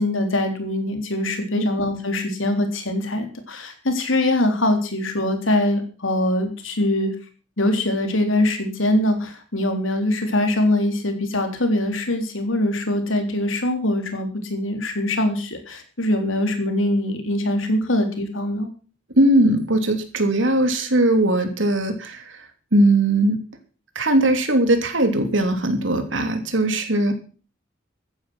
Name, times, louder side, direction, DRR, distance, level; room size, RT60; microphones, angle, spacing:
voice 1, 0.0-7.1 7.6-18.7, left 1 dB, 85° left, 6 dB, 3.6 m, -23 dB
voice 2, 19.2-22.2 22.7-23.4 23.9-27.1, right 1 dB, 70° right, 7 dB, 3.0 m, -19 dB
14.5 x 10.0 x 6.1 m, 0.38 s
head